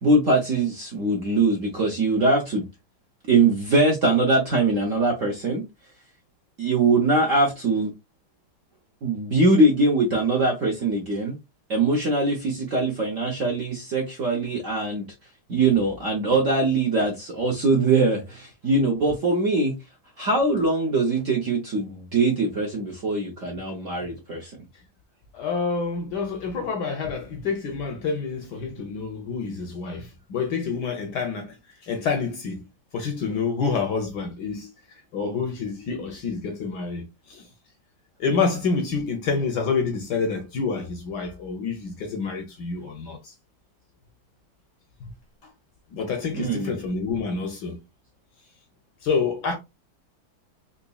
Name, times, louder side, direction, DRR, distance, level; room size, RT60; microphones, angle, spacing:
voice 1, 0.0-2.6 3.3-5.6 6.6-7.9 9.0-11.4 11.7-15.0 15.5-19.7 20.2-24.5 46.3-46.7, right 2 dB, 60° right, 0.8 m, -22 dB
voice 2, 25.3-31.6 31.8-32.6 32.9-34.7 35.1-37.5 38.2-43.3 45.0-45.1 45.4-45.5 45.9-47.8 49.0-49.6, left 5 dB, 70° left, 1.0 m, -28 dB
3.9 x 2.8 x 2.3 m
omnidirectional pair, 2.2 m